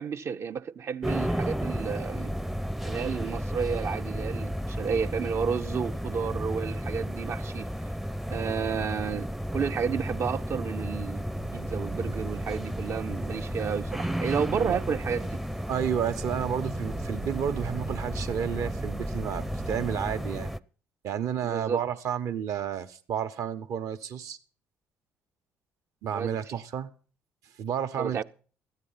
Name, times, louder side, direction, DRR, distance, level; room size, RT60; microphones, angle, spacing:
voice 1, 0.0-2.3 2.8-7.7 8.3-11.3 11.5-15.4 21.4-21.8 26.1-26.4 28.0-28.2, right 6 dB, 45° right, 0.6 m, -31 dB
sound 1, 1.0-20.6, equal, 5° right, 0.6 m, -33 dB
sound 2, 11.3-19.9, right 8 dB, 80° right, 1.4 m, -44 dB
voice 2, 15.7-20.5 21.0-24.4 26.0-26.9 27.6-28.2, right 8 dB, 60° right, 1.0 m, -31 dB
13.5 x 9.9 x 5.7 m
hypercardioid pair, 55°, 6 cm